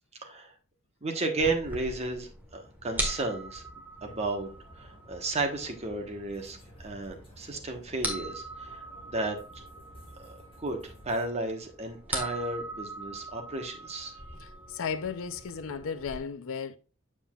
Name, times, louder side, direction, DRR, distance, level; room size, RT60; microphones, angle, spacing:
voice 1, 0.2-0.5 1.0-3.6 4.0-4.5 4.7-9.6 10.2-14.1, right 2 dB, 30° right, 1.2 m, -33 dB
sound 1, 1.4-16.2, right 1 dB, 10° right, 1.4 m, -41 dB
sound 2, 4.0-11.3, equal, 25° left, 2.0 m, -54 dB
voice 2, 14.4-16.8, left 6 dB, 65° left, 0.6 m, -35 dB
7.4 x 7.1 x 2.4 m
head